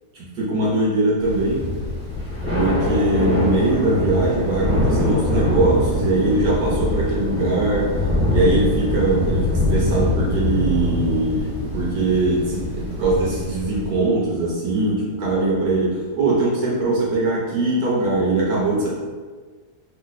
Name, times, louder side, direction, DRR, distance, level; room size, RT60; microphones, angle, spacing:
voice 1, 0.2-1.6 2.5-7.9 8.3-18.9, right 2 dB, 65° right, -5 dB, 1.1 m, -21 dB
Thunder / Rain, 1.2-14.1, left 2 dB, 25° right, 0.8 m, -24 dB
Run, 4.6-11.1, right 1 dB, 65° left, 1.1 m, -32 dB
3.1 x 2.1 x 3.9 m, 1.4 s
omnidirectional pair, 2.0 m